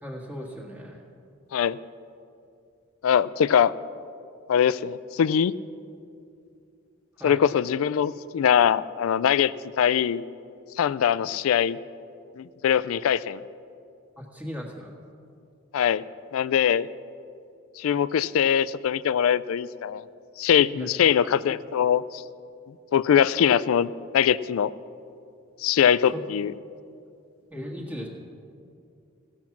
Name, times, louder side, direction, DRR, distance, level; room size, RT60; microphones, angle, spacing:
voice 1, 0.0-1.0 7.2-7.4 14.2-14.9 20.7-20.9 26.1-26.2 27.5-28.1, equal, 10° right, -2 dB, 1.5 m, -37 dB
voice 2, 3.0-3.7 4.5-5.5 7.2-10.2 10.8-11.8 12.4-13.4 15.7-16.0 16.3-16.9 17.8-20.1 20.4-22.2 22.9-24.7 25.6-26.5, left 8 dB, 85° left, 18 dB, 0.3 m, -22 dB
16.5 x 7.2 x 5.9 m, 2.6 s
head